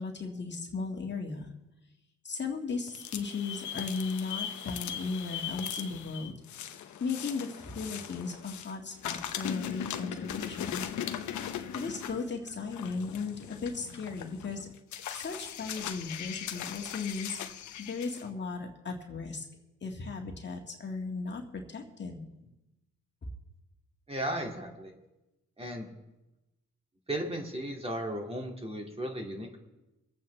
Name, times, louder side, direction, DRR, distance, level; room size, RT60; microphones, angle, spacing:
voice 1, 0.0-1.5 2.2-6.3 7.0-10.8 11.7-14.7 15.1-17.4 17.8-19.5 19.8-22.3, left 4 dB, 35° left, 1 dB, 1.9 m, -36 dB
sound 1, 2.9-8.7 9.0-18.2, left 9 dB, 75° left, 1.0 m, -39 dB
voice 2, 24.1-24.9 25.6-25.9 27.1-29.6, right 1 dB, 20° right, 1 dB, 2.3 m, -35 dB
24.5 x 8.5 x 3.3 m, 0.99 s
cardioid pair, 90°, 30 cm